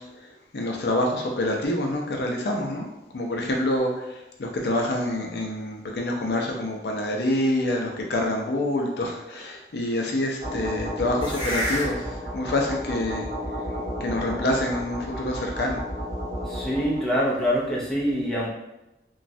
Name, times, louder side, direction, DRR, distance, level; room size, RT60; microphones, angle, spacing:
voice 1, 0.0-2.9 3.1-13.3 14.0-15.8, left 1 dB, 65° left, 1 dB, 0.4 m, -27 dB
sound 1, 10.4-17.0, equal, 30° right, 1.5 m, -31 dB
voice 2, 16.4-18.5, equal, ahead, -6 dB, 0.5 m, -25 dB
3.0 x 2.3 x 2.6 m, 0.96 s
head